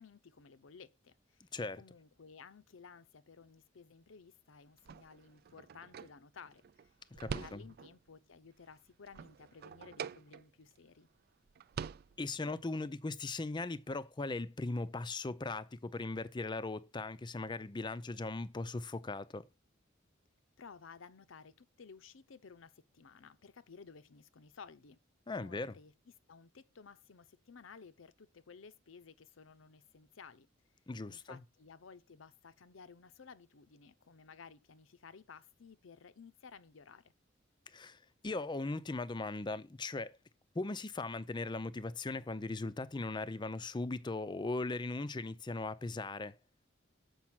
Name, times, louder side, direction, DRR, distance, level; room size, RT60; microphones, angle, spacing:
voice 1, 0.0-11.1 20.6-25.0 25.3-25.9 26.3-30.5 31.1-37.1, left 5 dB, 80° left, 0.7 m, -56 dB
sound 1, 4.8-8.1 8.5-10.8 11.1-11.2 11.5-12.6, right 6 dB, 50° right, 0.3 m, -46 dB
voice 2, 7.2-7.6 12.2-19.5 25.3-25.7 30.9-31.4 37.7-40.2 40.5-46.4, left 3 dB, 25° left, 0.5 m, -39 dB
7.3 x 5.4 x 5.9 m
head